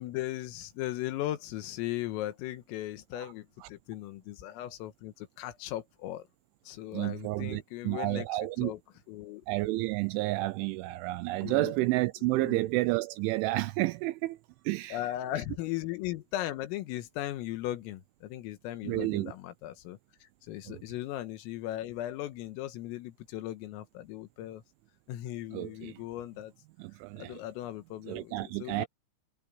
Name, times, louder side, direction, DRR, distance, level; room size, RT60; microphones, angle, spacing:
voice 1, 0.0-6.3 6.7-8.8 9.1-9.4 11.4-11.7 12.3-12.6 14.9-24.6 25.1-26.5 27.2-28.9, left 14 dB, 85° left, 4.0 m, -37 dB
voice 2, 6.9-8.7 9.5-14.4 14.7-15.0 18.8-19.3 20.7-20.8 25.5-26.0 26.8-27.4 28.1-28.9, right 20 dB, 85° right, 2.8 m, -31 dB
omnidirectional pair, 5.9 m